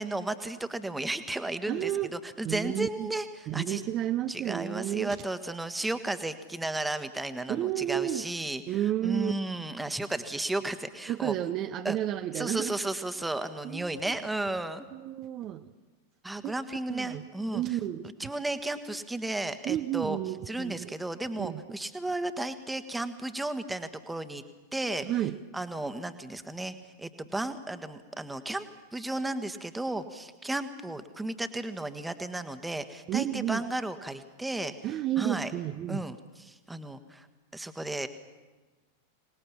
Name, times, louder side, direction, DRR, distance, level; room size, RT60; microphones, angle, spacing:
voice 1, 0.0-3.8 4.3-11.3 11.8-12.0 12.3-14.8 16.2-17.6 18.2-20.2 20.5-24.4 24.7-25.1 25.5-28.6 28.9-34.7 35.2-35.5 35.9-37.3 37.5-38.1, right 2 dB, 5° right, 10 dB, 1.4 m, -34 dB
voice 2, 1.7-2.1 2.4-3.1 3.5-5.2 7.5-8.2 8.7-9.3 11.1-12.8 13.6-14.2 14.9-15.7 16.4-16.5 16.9-17.2 17.5-18.1 19.7-20.9 21.4-21.6 25.0-25.4 33.1-33.6 34.8-36.0, right 12 dB, 35° right, 9 dB, 0.7 m, -31 dB
25.5 x 19.5 x 7.3 m, 1.2 s
figure-of-eight pair, 90°, 0 cm